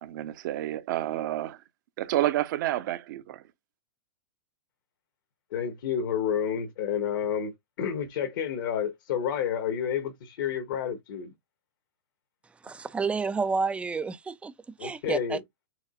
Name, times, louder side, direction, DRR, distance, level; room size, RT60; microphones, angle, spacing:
voice 1, 0.0-1.6 2.0-3.4, right 14 dB, 55° right, 0.9 m, -29 dB
voice 2, 5.5-7.5 7.8-11.3 14.8-15.4, left 8 dB, 65° left, 1.5 m, -30 dB
voice 3, 12.6-14.5 14.8-15.4, right 4 dB, 10° right, 0.5 m, -30 dB
5.0 x 4.1 x 2.5 m
hypercardioid pair, 125°, 12 cm